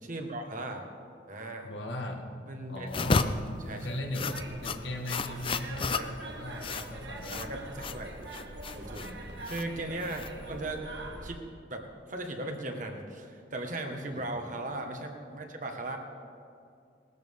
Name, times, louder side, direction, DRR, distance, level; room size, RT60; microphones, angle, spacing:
voice 1, 0.0-0.8 1.3-1.7 2.5-2.9 3.7-4.0 5.9-6.1 7.3-8.1 8.7-9.1 9.4-10.8 11.2-11.4 11.7-16.0, right 2 dB, 45° right, 3 dB, 1.5 m, -37 dB
voice 2, 1.6-2.3 2.7-3.3 3.7-7.4 9.0-9.3 14.1-14.3, left 1 dB, 85° left, 3 dB, 1.6 m, -38 dB
sound 1, 2.9-10.8, left 4 dB, 30° left, 0.5 m, -33 dB
sound 2, 4.1-11.4, right 2 dB, 80° right, 1.6 m, -44 dB
18.5 x 13.0 x 3.7 m, 2.4 s
head